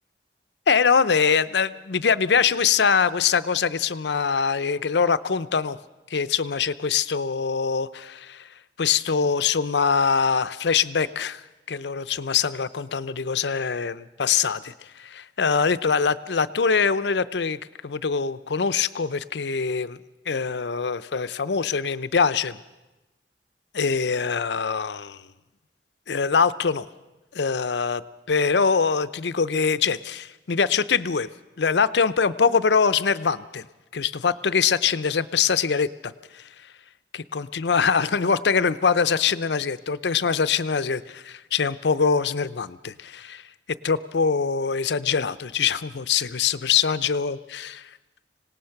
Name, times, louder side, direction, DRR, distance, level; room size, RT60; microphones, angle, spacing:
voice 1, 0.7-5.8 6.1-8.5 8.8-11.4 11.7-20.0 20.3-22.6 23.7-25.3 26.1-26.9 27.3-28.0 28.3-31.3 31.6-33.7 33.9-36.5 37.1-43.4 43.8-47.4 47.6-47.9, left 6 dB, 75° left, 15 dB, 0.6 m, -23 dB
25.5 x 18.0 x 5.9 m, 1.1 s
head